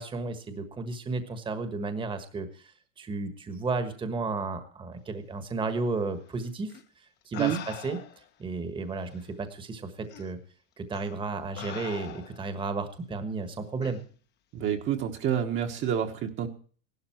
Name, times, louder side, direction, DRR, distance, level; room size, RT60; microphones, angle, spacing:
voice 1, 0.0-2.6 3.0-6.7 7.3-8.0 8.4-10.4 10.8-14.0, right 3 dB, 15° right, 9 dB, 1.4 m, -33 dB
sound 1, 6.7-6.8 7.3-8.3 9.2-9.3 10.1-10.3 10.9-11.1 11.6-12.5 13.8-14.0, left 10 dB, 25° left, 1.0 m, -42 dB
voice 2, 14.5-16.5, right 9 dB, 30° right, 4 dB, 1.3 m, -28 dB
15.5 x 12.0 x 4.5 m, 0.42 s
supercardioid pair, 135°, 38 cm